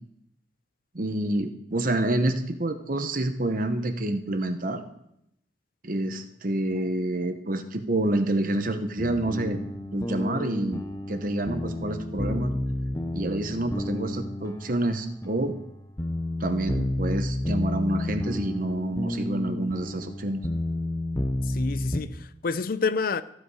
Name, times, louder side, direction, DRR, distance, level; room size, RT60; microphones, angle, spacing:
voice 1, 0.9-4.8 5.8-9.6 9.9-10.8 11.1-12.5 13.1-15.5 16.4-20.4, right 1 dB, 50° right, 1.0 m, -28 dB
sound 1, 9.0-22.0, left 1 dB, 20° left, 0.8 m, -31 dB
voice 2, 21.5-23.2, left 4 dB, 50° left, 0.5 m, -28 dB
14.5 x 8.1 x 4.9 m
head